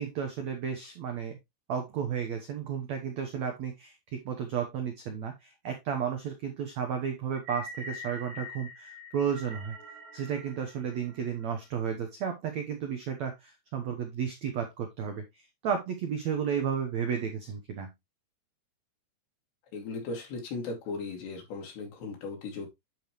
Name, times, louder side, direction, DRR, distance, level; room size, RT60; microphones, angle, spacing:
voice 1, 0.0-1.4 1.7-9.7 10.1-17.9, right 7 dB, 90° right, 5 dB, 1.5 m, -33 dB
sound 1, 7.3-11.7, left 2 dB, 55° right, 2.5 m, -45 dB
voice 2, 19.7-22.7, left 3 dB, 75° left, 1 dB, 4.9 m, -37 dB
11.0 x 5.1 x 3.1 m, 0.20 s
omnidirectional pair, 4.9 m